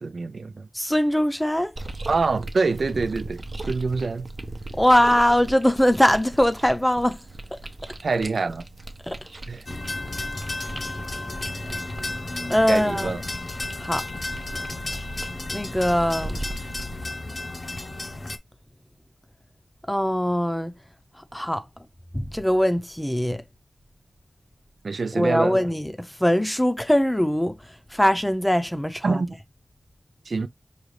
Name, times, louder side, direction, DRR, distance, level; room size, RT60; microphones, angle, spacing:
voice 1, 0.0-0.7 2.1-4.3 8.0-8.6 9.5-9.7 12.7-13.2 24.8-25.6 29.0-29.3 30.3-30.5, right 4 dB, 90° right, 0.3 m, -26 dB
voice 2, 0.7-1.7 4.8-7.2 9.0-9.2 12.5-13.1 13.8-14.1 15.5-16.4 19.9-20.8 21.3-21.6 22.1-23.4 25.2-27.6 27.9-29.2, equal, 10° left, 0.5 m, -21 dB
sound 1, 1.8-17.0, right 2 dB, 45° right, 0.6 m, -39 dB
sound 2, 9.7-18.4, left 2 dB, 50° left, 0.7 m, -32 dB
5.1 x 2.4 x 3.2 m
wide cardioid pair, 80°, 0 cm